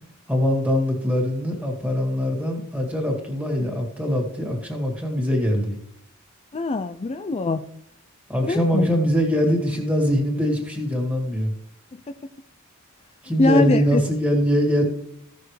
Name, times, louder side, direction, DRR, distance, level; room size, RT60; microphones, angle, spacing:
voice 1, 0.3-5.8 8.3-11.5 13.2-14.8, equal, 5° right, 0 dB, 2.3 m, -22 dB
voice 2, 6.5-7.6 8.4-8.9 13.4-14.0, left 2 dB, 30° left, 8 dB, 0.4 m, -22 dB
15.5 x 6.7 x 3.3 m, 0.73 s
head